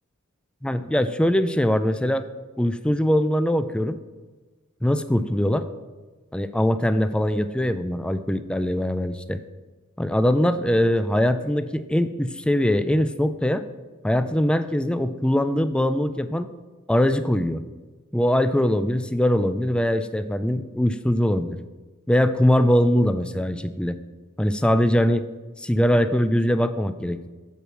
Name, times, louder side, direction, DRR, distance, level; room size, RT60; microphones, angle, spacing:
voice 1, 0.6-2.2 2.6-4.0 4.8-5.7 6.3-9.4 10.0-13.6 14.0-16.5 16.9-17.6 18.1-21.6 22.1-24.0 24.4-25.3 25.6-27.3, equal, 5° left, 11 dB, 0.3 m, -22 dB
8.2 x 4.7 x 7.2 m, 1.3 s
head